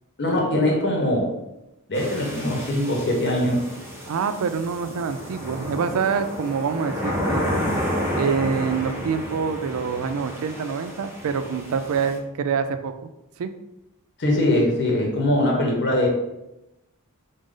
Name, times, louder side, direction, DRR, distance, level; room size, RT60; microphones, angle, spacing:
voice 1, 0.2-1.3 1.9-3.7 14.2-16.1, left 1 dB, 50° left, -1 dB, 0.9 m, -22 dB
sound 1, 1.9-12.2, equal, 10° right, 0.7 m, -31 dB
voice 2, 4.1-7.5 8.1-12.9 13.4-13.5, right 6 dB, 70° right, 9 dB, 0.4 m, -26 dB
5.0 x 2.0 x 3.7 m, 0.92 s
head